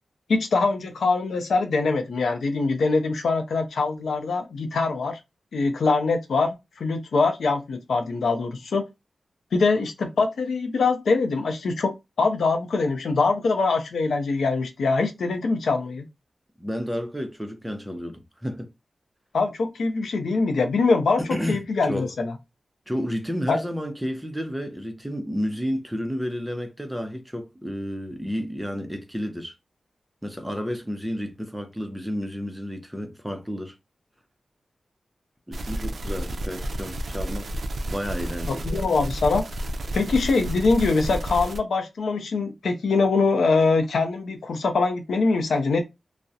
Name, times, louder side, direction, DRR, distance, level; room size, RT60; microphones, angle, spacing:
voice 1, 0.3-5.2 5.5-8.8 9.5-16.0 19.3-21.2 21.5-22.3 23.5-23.6 38.5-39.4 39.9-45.8, left 3 dB, 90° left, 0.5 m, -23 dB
voice 2, 16.6-18.7 21.2-21.6 21.9-22.1 22.9-29.5 30.2-33.7 35.5-37.5 37.9-38.9, equal, 5° right, 0.5 m, -31 dB
sound 1, 35.5-41.6, right 1 dB, 65° right, 0.3 m, -31 dB
2.3 x 2.0 x 2.6 m
wide cardioid pair, 90°, 0 cm